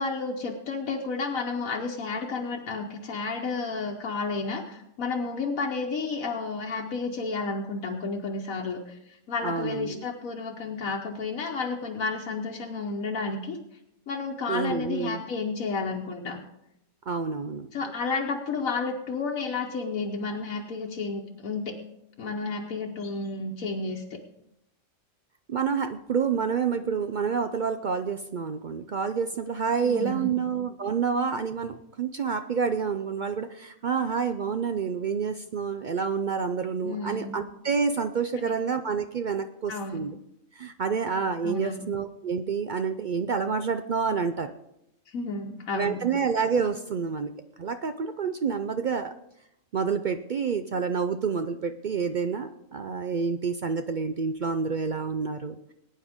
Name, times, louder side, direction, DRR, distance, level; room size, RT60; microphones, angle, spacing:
voice 1, 0.0-13.6 14.1-16.4 17.7-21.8 22.2-24.2 29.8-30.4 36.8-37.4 38.3-38.5 39.7-40.0 41.4-41.9 45.1-46.1, left 4 dB, 85° left, 0 dB, 1.4 m, -31 dB
voice 2, 9.4-10.0 14.5-15.2 17.1-17.7 25.5-40.1 40.6-44.5 45.8-47.3 47.6-49.1 49.7-55.7, right 6 dB, 65° right, 9 dB, 0.4 m, -28 dB
20.0 x 9.7 x 3.6 m, 0.83 s
omnidirectional pair, 1.4 m